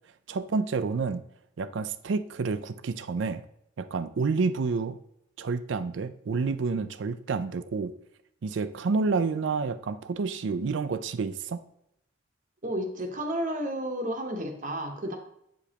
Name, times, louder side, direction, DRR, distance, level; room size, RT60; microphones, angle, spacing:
voice 1, 0.3-1.2 1.6-3.4 3.8-5.0 5.4-7.9 8.4-11.6, right 4 dB, 75° right, 12 dB, 0.4 m, -29 dB
voice 2, 12.6-15.2, right 1 dB, 40° right, 3 dB, 0.9 m, -32 dB
7.9 x 5.0 x 2.9 m, 0.76 s
head